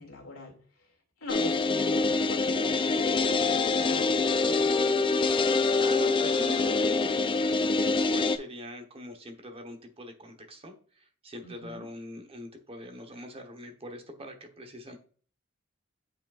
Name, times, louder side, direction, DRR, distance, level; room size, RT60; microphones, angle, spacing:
voice 1, 0.0-4.7 11.4-11.9, left 2 dB, 80° left, 0 dB, 2.2 m, -45 dB
sound 1, 1.3-8.4, left 3 dB, 25° left, 0.3 m, -25 dB
voice 2, 5.8-15.0, equal, 30° right, 4 dB, 1.0 m, -43 dB
8.3 x 4.9 x 2.4 m, 0.43 s
head